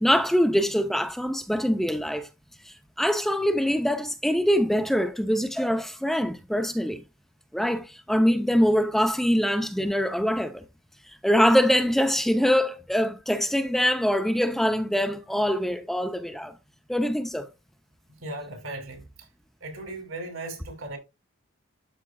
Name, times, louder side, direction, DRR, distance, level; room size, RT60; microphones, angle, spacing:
voice 1, 0.0-2.3 2.6-7.0 7.5-10.6 11.1-16.5 16.9-17.5, equal, ahead, 0.5 m, -24 dB
voice 2, 18.2-19.0 19.6-21.0, right 2 dB, 75° right, 2.7 m, -37 dB
12.5 x 4.9 x 2.3 m
head